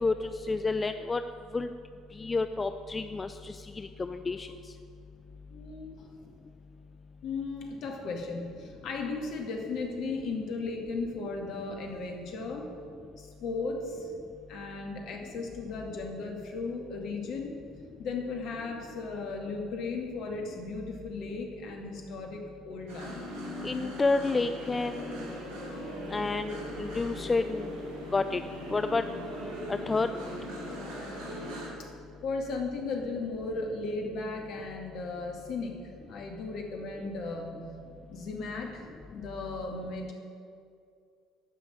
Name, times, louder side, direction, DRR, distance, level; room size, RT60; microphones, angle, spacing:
voice 1, 0.0-1.2 1.5-1.7 2.2-4.5 23.6-25.3 26.1-27.7 28.1-28.4 28.7-29.0 29.7-30.1, left 3 dB, 25° left, 9 dB, 0.5 m, -29 dB
voice 2, 5.5-6.0 7.2-12.7 13.2-14.1 14.5-17.5 18.0-23.3 31.8-31.9 32.2-35.8 36.1-37.7 38.1-40.1, left 3 dB, 60° left, 2 dB, 2.3 m, -36 dB
sound 1, 22.9-31.7, equal, 70° right, 2.9 m, -39 dB
14.5 x 6.1 x 9.2 m, 2.4 s
hypercardioid pair, 60°, 0 cm